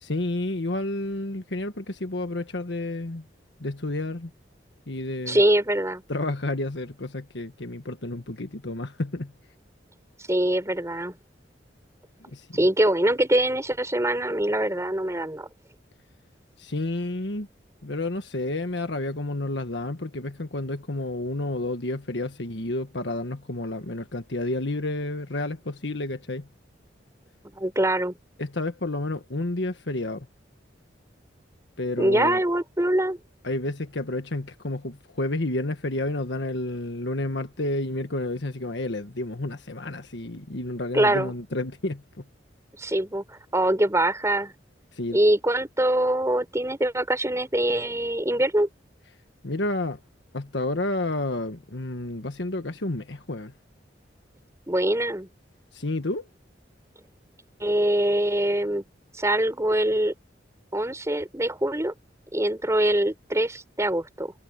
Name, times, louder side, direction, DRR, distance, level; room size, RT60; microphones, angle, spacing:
voice 1, 0.0-3.2 3.6-4.3 4.9-5.4 6.1-9.3 12.2-12.6 16.6-17.5 17.8-26.5 28.4-30.3 31.8-32.4 33.4-42.2 44.9-45.2 49.4-50.0 50.3-53.5 55.7-56.3, left 2 dB, 70° left, 1.5 m, -30 dB
voice 2, 5.3-6.0 10.3-11.2 12.5-15.5 27.6-28.1 32.0-33.2 40.9-41.3 42.8-44.5 45.1-48.7 54.7-55.3 57.6-58.8 59.2-60.1 60.7-61.9 62.3-64.3, right 1 dB, 15° right, 4.4 m, -23 dB
head